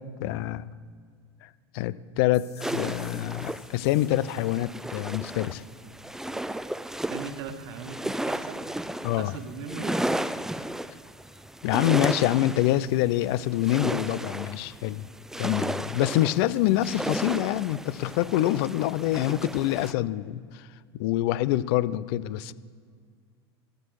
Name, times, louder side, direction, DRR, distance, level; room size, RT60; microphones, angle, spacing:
voice 1, 0.2-0.6 1.4-1.5 1.7-5.6 9.0-9.3 11.6-15.0 15.4-20.7 21.0-22.5, left 14 dB, 65° left, 18 dB, 0.6 m, -26 dB
sound 1, 2.3-5.3, left 7 dB, 85° left, 2.4 m, -53 dB
sound 2, 2.6-19.9, right 1 dB, 5° right, 0.5 m, -34 dB
voice 2, 7.1-8.6 9.2-10.1, right 5 dB, 70° right, 9 dB, 1.4 m, -38 dB
14.5 x 12.0 x 4.8 m, 2.1 s
hypercardioid pair, 100°, 14 cm